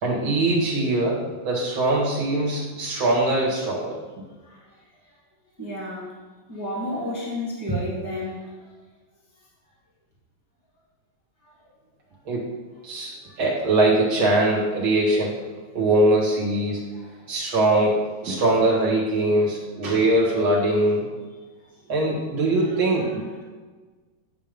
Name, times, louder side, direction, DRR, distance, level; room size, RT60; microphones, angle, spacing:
voice 1, 0.0-4.0 12.3-12.5 12.8-13.1 13.4-15.4 15.7-16.8 17.3-21.1 21.9-23.2, right 2 dB, 90° right, -4 dB, 2.8 m, -22 dB
voice 2, 5.6-6.1 6.5-8.5 11.4-11.5 13.1-13.3 16.9-17.3 18.3-18.4, equal, 10° right, -6 dB, 1.6 m, -31 dB
10.0 x 3.7 x 5.3 m, 1.3 s
omnidirectional pair, 2.1 m